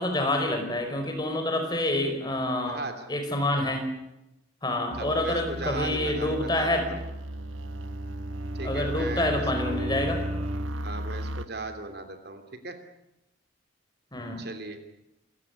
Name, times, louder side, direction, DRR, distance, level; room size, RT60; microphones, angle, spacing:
voice 1, 0.0-2.8 3.1-3.9 4.6-6.9 8.6-10.2 14.1-14.4, left 1 dB, 20° left, 5 dB, 5.1 m, -27 dB
voice 2, 2.6-3.0 4.9-7.0 8.5-9.8 10.8-12.8 14.4-14.8, right 2 dB, 50° right, 7 dB, 2.9 m, -37 dB
sound 1, 4.9-11.5, right 1 dB, 80° right, 1.2 m, -35 dB
Bowed string instrument, 7.3-10.9, right 1 dB, 30° right, 1.3 m, -36 dB
27.5 x 16.5 x 9.8 m, 0.89 s
head